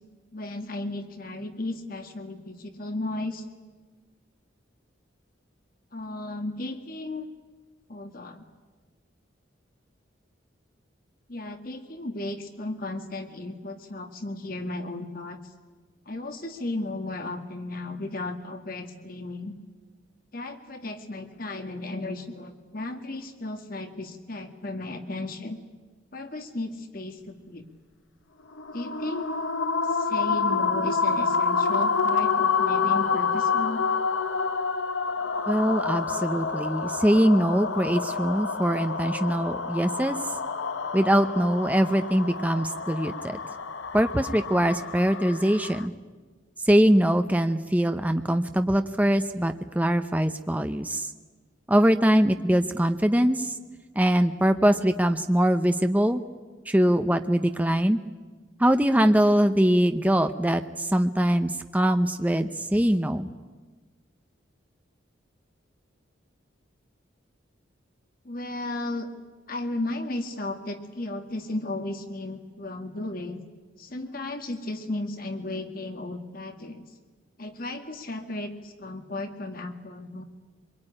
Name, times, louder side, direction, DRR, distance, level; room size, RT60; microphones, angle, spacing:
voice 1, 0.3-3.4 5.9-7.3 7.9-8.5 11.3-15.4 16.1-19.6 20.3-25.6 26.1-27.6 28.7-29.3 29.9-33.8 68.2-69.1 69.5-73.4 73.8-76.8 77.4-80.2, left 2 dB, 45° left, 6 dB, 1.9 m, -34 dB
sound 1, 28.5-45.9, left 5 dB, 75° left, 0.9 m, -28 dB
voice 2, 35.5-40.2 40.9-43.4 43.9-45.9 46.7-51.1 51.7-53.5 54.0-56.2 56.7-58.0 58.6-63.3, equal, 10° right, 7 dB, 0.8 m, -22 dB
24.5 x 22.5 x 10.0 m, 1.3 s
head